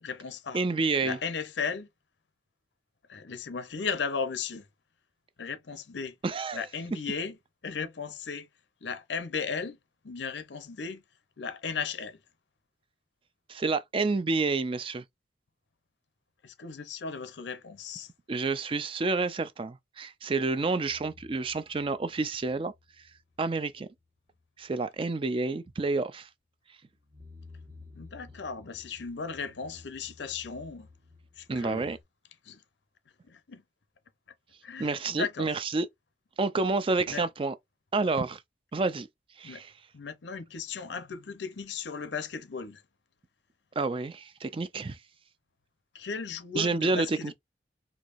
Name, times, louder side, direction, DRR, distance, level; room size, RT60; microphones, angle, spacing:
voice 1, 0.0-0.6 1.0-1.9 3.1-4.7 5.4-6.2 6.5-7.4 7.6-8.5 8.8-9.8 10.0-11.0 11.4-12.2 16.4-18.1 27.9-30.9 31.4-31.9 32.4-32.6 33.3-33.6 34.6-35.6 37.1-37.2 39.4-39.6 39.9-42.8 45.9-47.3, left 5 dB, 85° left, 0.7 m, -36 dB
voice 2, 0.5-1.2 6.2-6.7 13.5-15.0 18.3-22.7 23.4-23.9 24.6-26.3 31.5-32.0 34.8-35.9 36.4-37.5 37.9-38.4 38.7-39.1 39.4-39.7 43.8-45.0 46.5-47.3, right 3 dB, 30° right, 0.4 m, -29 dB
sound 1, 20.8-23.4 23.7-24.0 24.3-24.4 26.9-32.0, left 3 dB, 50° right, 1.2 m, -54 dB
4.6 x 2.7 x 2.5 m
head